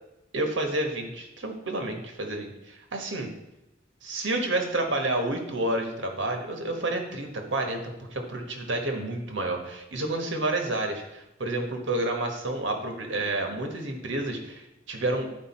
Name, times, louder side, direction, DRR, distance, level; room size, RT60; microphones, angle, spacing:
voice 1, 0.3-3.3 4.0-15.3, right 2 dB, 80° right, 3 dB, 1.4 m, -30 dB
11.0 x 5.1 x 4.3 m, 0.92 s
head